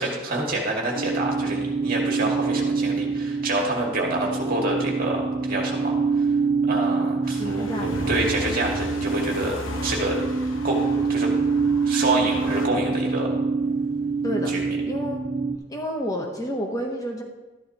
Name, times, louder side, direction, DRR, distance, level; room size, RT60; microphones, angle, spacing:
voice 1, 0.0-6.3 6.7-10.2 10.6-10.8 11.1-11.3 11.8-13.3 14.5-14.8, right 2 dB, 50° right, -1 dB, 2.1 m, -27 dB
sound 1, 0.9-15.6, right 4 dB, 75° right, 1.2 m, -25 dB
sound 2, 7.2-12.7, left 2 dB, 85° left, 0.9 m, -36 dB
voice 2, 7.3-8.1 14.2-14.5 14.9-15.2 15.7-17.2, equal, 20° left, 1 dB, 0.8 m, -30 dB
13.0 x 10.5 x 2.9 m, 1.2 s
head